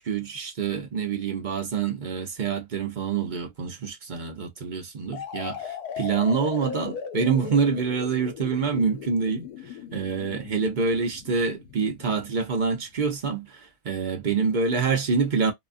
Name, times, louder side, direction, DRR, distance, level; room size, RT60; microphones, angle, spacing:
voice 1, 0.0-9.5 9.9-15.5, right 5 dB, 45° right, 0.7 m, -26 dB
sound 1, 5.1-12.8, left 7 dB, 80° left, 1.3 m, -38 dB
2.8 x 2.3 x 2.5 m
omnidirectional pair, 1.6 m